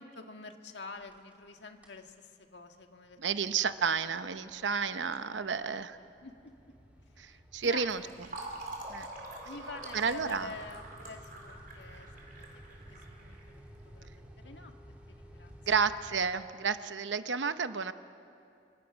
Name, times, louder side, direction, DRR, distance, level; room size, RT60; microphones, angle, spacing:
voice 1, 0.0-3.2 5.2-6.5 7.1-8.1 9.4-14.7 15.1-15.9, left 3 dB, 75° left, 5 dB, 1.7 m, -48 dB
sound 1, 0.9-1.5 1.8-2.1 2.5-16.8, equal, 10° right, 3.2 m, -55 dB
voice 2, 3.2-6.0 7.2-8.0 8.9-9.1 9.9-10.5 15.7-17.9, right 6 dB, 90° right, 11 dB, 0.8 m, -31 dB
Fill (with liquid), 7.6-14.0, right 2 dB, 50° right, 4.2 m, -45 dB
27.0 x 25.5 x 6.2 m, 2.6 s
head